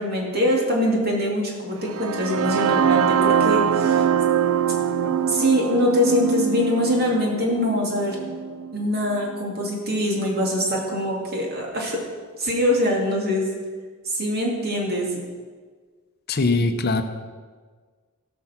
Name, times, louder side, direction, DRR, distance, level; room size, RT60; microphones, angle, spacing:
voice 1, 0.0-4.1 5.3-8.2 8.7-12.0 12.4-13.5 14.0-15.2, equal, 45° right, -2 dB, 2.6 m, -23 dB
sound 1, 1.9-9.8, right 8 dB, 70° right, 0.4 m, -23 dB
voice 2, 16.3-17.0, left 3 dB, 45° left, 8 dB, 0.6 m, -22 dB
16.5 x 6.1 x 5.8 m, 1.5 s
head